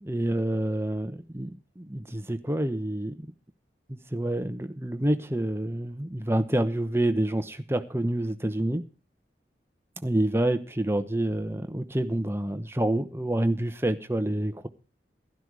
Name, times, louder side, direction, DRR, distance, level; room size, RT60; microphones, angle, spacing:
voice 1, 0.0-3.3 3.9-8.8 10.0-14.7, right 1 dB, 15° right, 9 dB, 0.9 m, -28 dB
12.5 x 12.0 x 4.8 m, 0.34 s
head